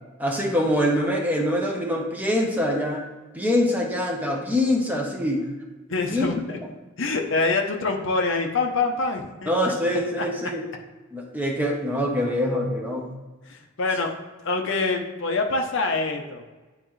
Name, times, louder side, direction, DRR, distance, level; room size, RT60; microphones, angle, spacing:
voice 1, 0.2-3.0 3.3-5.4 6.1-6.2 9.5-10.6 11.1-13.1, left 1 dB, 10° right, -1 dB, 0.9 m, -24 dB
voice 2, 5.9-6.6 7.0-9.5 10.2-10.3 13.4-14.1 14.4-16.4, left 3 dB, 60° left, 2 dB, 0.8 m, -25 dB
10.0 x 3.7 x 3.2 m, 1.2 s
head